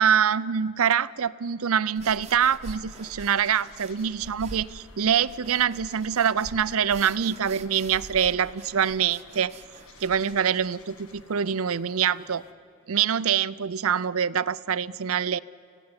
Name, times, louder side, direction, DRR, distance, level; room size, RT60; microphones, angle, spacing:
voice 1, 0.0-9.5 10.0-12.4 12.9-15.4, right 8 dB, 75° right, 0.5 m, -25 dB
sound 1, 2.0-12.5, left 4 dB, 75° left, 1.5 m, -54 dB
sound 2, 2.0-11.2, right 2 dB, 30° right, 0.9 m, -45 dB
27.0 x 16.5 x 9.7 m
head